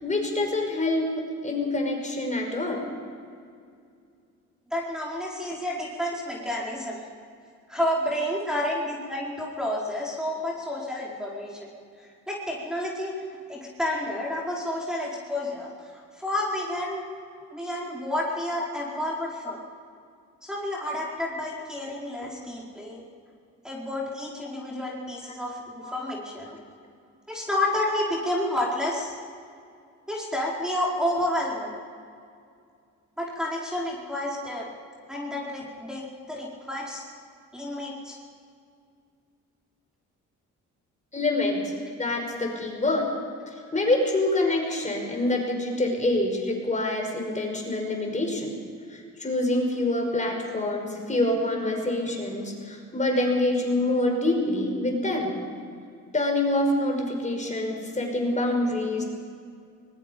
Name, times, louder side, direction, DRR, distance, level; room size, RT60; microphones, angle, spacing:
voice 1, 0.0-1.0 1.4-2.8 8.5-8.7 25.8-25.9 41.1-41.6 42.0-43.0 43.7-48.5 48.9-55.3 56.1-59.0, left 2 dB, 25° left, 1 dB, 5.6 m, -26 dB
voice 2, 4.7-7.0 7.7-11.7 12.0-13.1 13.5-17.1 17.5-19.6 20.4-23.0 23.6-26.5 27.3-29.1 30.1-31.7 33.2-34.6 35.1-37.0 37.5-38.2, left 1 dB, ahead, -4 dB, 4.7 m, -30 dB
24.5 x 21.0 x 5.4 m, 2.3 s
cardioid pair, 90°, 30 cm